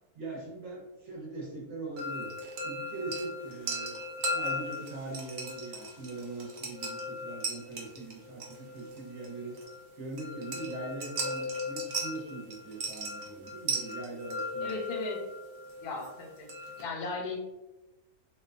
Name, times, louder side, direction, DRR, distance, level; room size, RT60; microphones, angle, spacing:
voice 1, 0.1-2.3 2.6-4.0 4.3-9.6 10.0-14.7, right 2 dB, 60° right, -4 dB, 0.8 m, -41 dB
sound 1, 2.0-16.8, equal, 85° right, 0.5 m, -37 dB
voice 2, 14.6-15.2 15.8-16.5 16.8-17.4, left 3 dB, 85° left, 1 dB, 1.1 m, -36 dB
2.6 x 2.2 x 2.4 m, 0.99 s
omnidirectional pair, 1.7 m